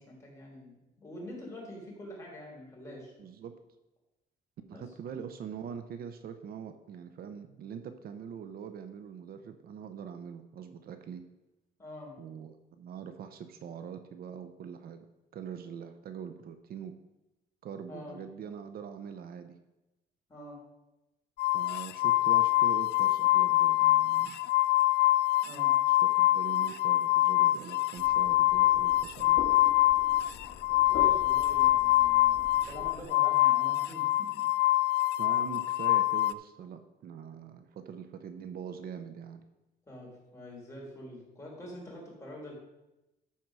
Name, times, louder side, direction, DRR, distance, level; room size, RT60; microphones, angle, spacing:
voice 1, 0.0-3.1 4.6-4.8 11.8-12.1 17.9-18.2 20.3-20.6 25.4-25.7 30.7-34.4 39.9-42.5, left 1 dB, 15° left, -3 dB, 3.8 m, -45 dB
voice 2, 3.2-3.6 4.7-11.2 12.2-15.1 15.3-16.9 17.6-19.6 21.5-24.4 26.2-29.4 35.2-39.4, right 7 dB, 65° right, 9 dB, 0.8 m, -43 dB
sound 1, 21.4-36.3, left 16 dB, 80° left, 0.4 m, -25 dB
sound 2, 28.0-33.1, left 4 dB, 60° left, 1.8 m, -44 dB
13.0 x 4.6 x 6.1 m, 0.97 s
cardioid pair, 145°, 17 cm